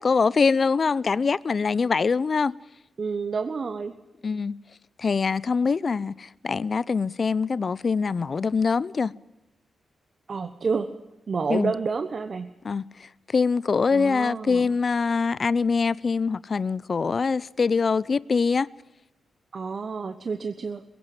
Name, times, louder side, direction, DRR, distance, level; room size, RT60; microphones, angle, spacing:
voice 1, 0.0-2.5 4.2-4.6 5.0-9.1 11.5-11.7 12.6-12.8 13.3-18.7, left 5 dB, 50° left, 0.6 m, -23 dB
voice 2, 3.0-3.9 10.3-10.9 11.3-12.5 13.9-14.7 19.5-20.8, right 5 dB, 55° right, 1.1 m, -29 dB
21.5 x 16.5 x 7.7 m
cardioid pair, 60°, 0 cm